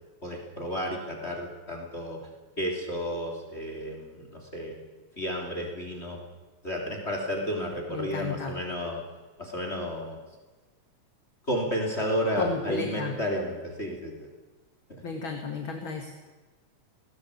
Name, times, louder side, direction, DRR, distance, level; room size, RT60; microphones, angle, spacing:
voice 1, 0.2-2.2 2.6-4.8 5.2-6.2 6.6-9.0 9.4-10.2 11.5-14.3 14.9-15.0, equal, 20° left, 2 dB, 3.4 m, -32 dB
voice 2, 7.9-8.5 12.4-13.1 15.0-16.1, left 4 dB, 45° left, 3 dB, 2.5 m, -33 dB
20.0 x 18.0 x 8.5 m, 1.2 s
omnidirectional pair, 3.4 m